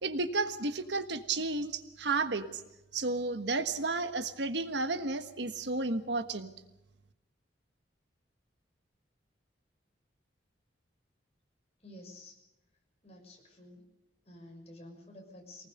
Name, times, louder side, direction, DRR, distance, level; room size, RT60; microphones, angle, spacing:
voice 1, 0.0-2.6 2.9-6.5, right 3 dB, 70° right, 9 dB, 1.4 m, -32 dB
voice 2, 11.8-12.4 13.0-13.8 14.2-15.7, left 1 dB, 35° left, 1 dB, 6.3 m, -51 dB
24.5 x 19.5 x 6.7 m, 0.94 s
head